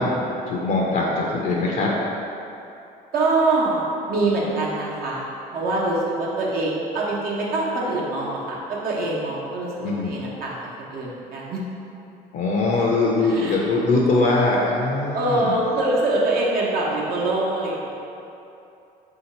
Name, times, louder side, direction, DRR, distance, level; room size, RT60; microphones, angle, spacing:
voice 1, 0.0-1.9 9.8-10.2 12.3-15.5, left 2 dB, 50° left, -2 dB, 0.5 m, -22 dB
voice 2, 3.1-5.2 5.5-11.6 13.2-13.6 15.1-18.0, right 2 dB, 60° right, -5 dB, 0.9 m, -24 dB
3.7 x 2.8 x 4.1 m, 2.8 s
cardioid pair, 110°, 17 cm